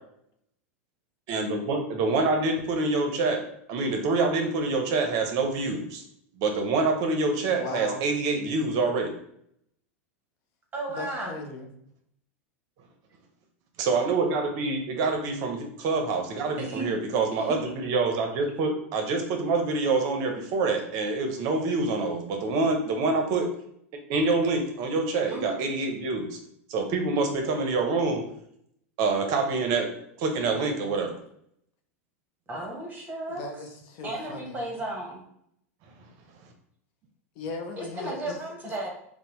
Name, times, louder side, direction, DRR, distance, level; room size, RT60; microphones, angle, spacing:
voice 1, 1.3-3.4 3.7-6.0 6.4-9.1 13.8-23.5 24.1-26.4 26.7-28.2 29.0-29.9 30.2-31.2, right 3 dB, 50° right, 4 dB, 0.6 m, -26 dB
voice 2, 7.6-8.0 10.9-11.7 33.3-34.8 37.4-38.4, left 2 dB, 55° left, 4 dB, 0.6 m, -37 dB
voice 3, 10.7-11.3 16.6-17.0 17.3-17.6 25.3-25.5 32.5-33.4 34.0-35.2 37.8-38.9, right 1 dB, 20° right, -1 dB, 1.0 m, -34 dB
2.7 x 2.0 x 3.0 m, 0.70 s
hypercardioid pair, 100°, 8 cm